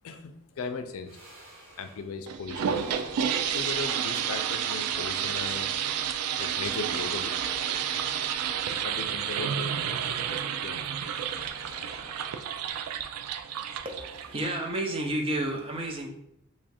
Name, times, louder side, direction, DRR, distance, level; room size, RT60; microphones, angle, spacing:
voice 1, 0.0-1.2 1.8-3.0 3.5-5.7 6.4-8.0 8.8-11.4, left 4 dB, 70° left, 8 dB, 0.4 m, -38 dB
sound 1, 1.0-2.1 2.5-4.5 5.0-6.2 6.6-8.6 9.2-10.6 11.1-13.2, equal, 60° right, 1.1 m, -49 dB
sound 2, 2.3-14.8, right 8 dB, 90° right, 0.3 m, -31 dB
voice 2, 13.8-16.1, right 1 dB, 25° right, 2 dB, 0.5 m, -31 dB
3.0 x 2.4 x 4.2 m, 0.76 s
head